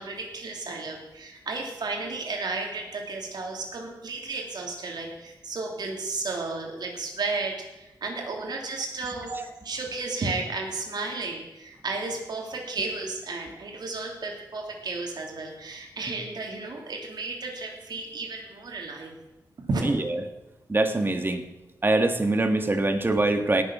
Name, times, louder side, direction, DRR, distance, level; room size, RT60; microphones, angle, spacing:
voice 1, 0.0-9.3 9.6-19.1 19.6-19.9, right 3 dB, 65° right, 1 dB, 2.9 m, -33 dB
voice 2, 20.7-21.4 21.8-23.6, right 2 dB, 30° right, 7 dB, 1.5 m, -23 dB
17.5 x 7.0 x 6.1 m, 0.99 s
cardioid pair, 85°, 8 cm